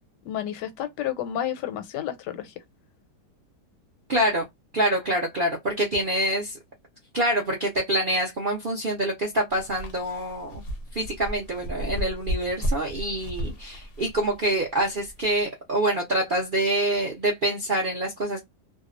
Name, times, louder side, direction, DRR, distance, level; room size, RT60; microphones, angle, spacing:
voice 1, 0.2-2.5, left 11 dB, 90° left, 1.2 m, -31 dB
voice 2, 4.1-4.5 4.7-6.6 7.1-10.6 10.9-18.4, right 1 dB, 65° right, 0.5 m, -26 dB
sound 1, 9.5-15.4, equal, 55° left, 0.6 m, -33 dB
2.7 x 2.1 x 2.4 m
omnidirectional pair, 1.8 m